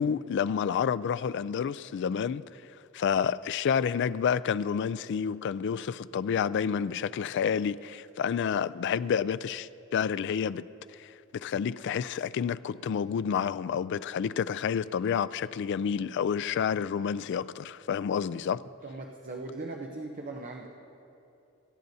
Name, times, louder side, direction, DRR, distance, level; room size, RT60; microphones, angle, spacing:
voice 1, 0.0-2.4 2.9-10.6 11.0-18.6, left 7 dB, 55° left, 0.3 m, -29 dB
voice 2, 18.8-20.7, right 2 dB, 40° right, 0.8 m, -39 dB
24.5 x 11.5 x 2.7 m
head